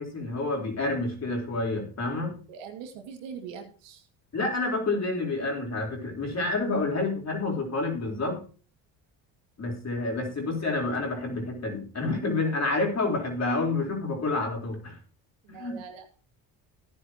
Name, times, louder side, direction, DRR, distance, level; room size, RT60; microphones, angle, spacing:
voice 1, 0.0-2.4 4.3-8.4 9.6-15.0 15.6-15.8, left 2 dB, 35° left, 0 dB, 4.2 m, -29 dB
voice 2, 2.5-4.1 15.4-16.0, right 6 dB, 85° right, 4 dB, 2.3 m, -42 dB
14.0 x 9.8 x 3.0 m, 0.38 s
supercardioid pair, 85°, 43 cm